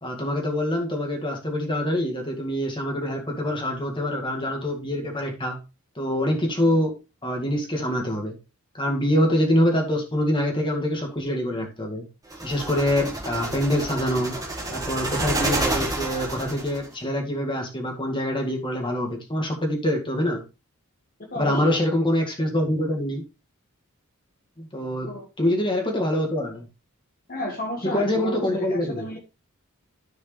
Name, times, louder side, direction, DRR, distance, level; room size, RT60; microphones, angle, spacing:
voice 1, 0.0-5.6 6.0-7.0 7.2-8.4 8.7-12.0 12.4-14.4 14.7-20.4 21.4-23.2 24.6-25.1 25.4-26.7 27.8-29.1, left 1 dB, 20° left, 1 dB, 2.0 m, -25 dB
sound 1, 12.3-16.9, right 2 dB, 15° right, 1.7 m, -29 dB
voice 2, 21.2-21.8 25.0-25.3 27.3-29.2, left 1 dB, 40° left, 1 dB, 1.6 m, -33 dB
13.5 x 4.9 x 3.3 m, 0.28 s
head